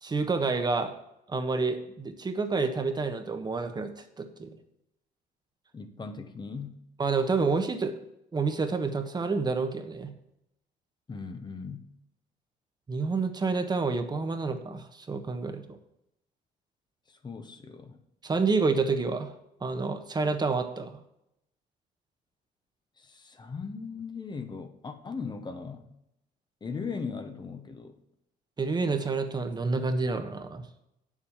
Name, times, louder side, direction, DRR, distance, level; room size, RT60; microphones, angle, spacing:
voice 1, 0.0-0.9 1.3-4.5 7.0-7.9 8.3-10.1 12.9-15.8 18.2-19.3 19.6-21.0 28.6-30.6, right 4 dB, 25° right, 7 dB, 1.2 m, -28 dB
voice 2, 5.7-6.8 11.1-11.9 17.1-18.0 23.0-25.9 26.6-28.0, left 5 dB, 25° left, 8 dB, 1.1 m, -38 dB
8.5 x 7.4 x 7.2 m, 0.82 s
cardioid pair, 110°, 17 cm